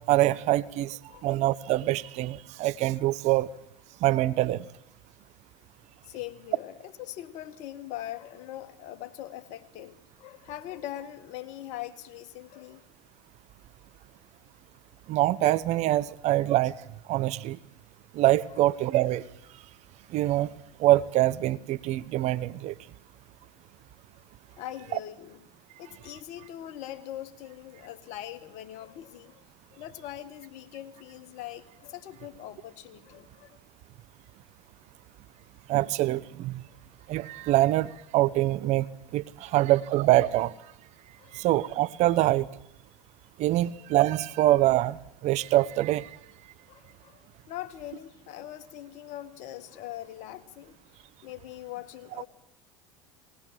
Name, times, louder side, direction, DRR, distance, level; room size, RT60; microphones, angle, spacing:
voice 1, 0.1-3.5 4.0-4.6 15.1-16.7 17.1-17.6 18.1-19.2 20.1-20.5 20.8-22.7 35.7-36.6 37.1-38.9 39.1-40.5 41.3-42.5 43.4-46.1, right 15 dB, 55° right, 17 dB, 0.9 m, -24 dB
voice 2, 0.9-1.4 6.0-12.8 24.6-25.4 25.8-29.4 29.7-33.6 36.7-36.8 39.4-39.6 41.2-41.4 43.5-43.6 46.7-50.8 51.2-52.3, left 13 dB, 60° left, 9 dB, 1.9 m, -42 dB
20.0 x 19.5 x 7.6 m, 0.78 s
hypercardioid pair, 85°, 14 cm